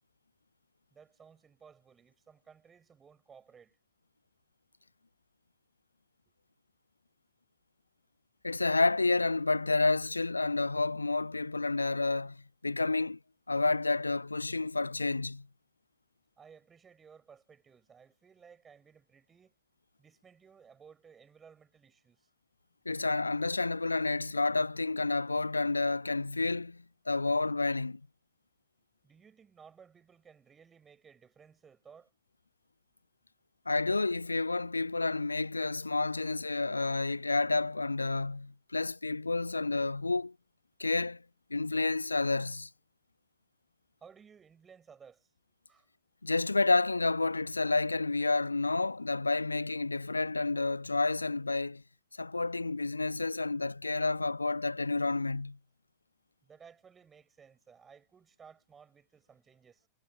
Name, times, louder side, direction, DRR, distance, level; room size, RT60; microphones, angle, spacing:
voice 1, 0.9-3.8 16.4-19.5 20.0-22.3 29.0-32.1 44.0-45.3 45.7-45.9 56.4-59.9, right 6 dB, 20° right, 4.8 m, -58 dB
voice 2, 8.4-13.2 13.5-15.5 22.9-28.0 33.7-40.3 40.8-41.2 41.5-42.7 46.2-51.8 52.2-55.6, left 3 dB, 80° left, 0.5 m, -30 dB
figure-of-eight pair, 90°, 0 cm